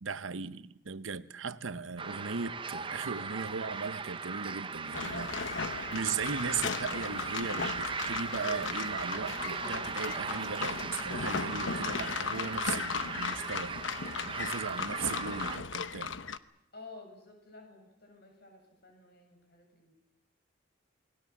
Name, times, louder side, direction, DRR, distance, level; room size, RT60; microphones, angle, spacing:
voice 1, 0.0-13.9 14.2-16.2, right 5 dB, 85° right, 0.9 m, -38 dB
sound 1, 2.0-15.6, right 5 dB, 25° right, 0.8 m, -38 dB
sound 2, 4.9-16.4, left 5 dB, 75° left, 0.9 m, -37 dB
voice 2, 16.7-19.9, left 3 dB, 55° left, 7.3 m, -52 dB
28.0 x 20.0 x 7.2 m
head